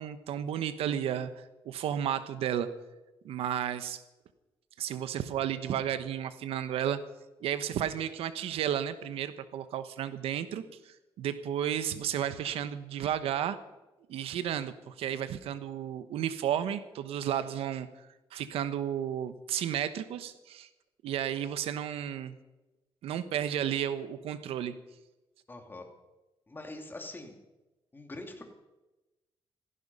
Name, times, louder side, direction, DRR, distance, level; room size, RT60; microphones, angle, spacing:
voice 1, 0.0-2.7 3.2-4.0 4.8-7.0 7.4-13.6 14.1-17.9 18.3-20.7 21.0-22.3 23.0-24.7, right 10 dB, 90° right, 12 dB, 1.1 m, -33 dB
voice 2, 25.5-25.9 26.5-27.4 27.9-28.4, left 2 dB, 20° left, 4 dB, 2.7 m, -43 dB
16.5 x 15.0 x 5.5 m, 1.1 s
cardioid pair, 110°, 10 cm